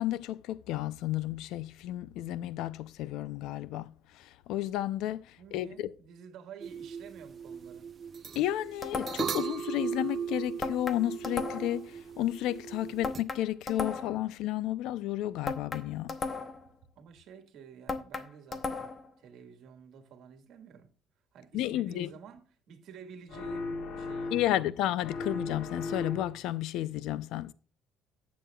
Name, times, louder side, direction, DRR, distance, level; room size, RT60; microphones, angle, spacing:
voice 1, 0.0-5.9 8.4-16.2 21.5-22.1 24.3-27.5, left 13 dB, 80° left, 0.5 m, -32 dB
voice 2, 5.4-7.9 17.0-18.9 19.2-20.9 21.3-24.7, right 7 dB, 60° right, 1.7 m, -51 dB
sound 1, 6.6-13.2, right 7 dB, 35° right, 0.7 m, -38 dB
sound 2, 8.8-9.4 10.6-11.8 13.0-14.3 15.5-16.7 17.9-19.1, left 4 dB, 25° left, 0.9 m, -36 dB
sound 3, 23.3-24.7 25.0-26.5, left 3 dB, 60° left, 1.5 m, -37 dB
13.0 x 8.5 x 2.3 m
cardioid pair, 155°, 0 cm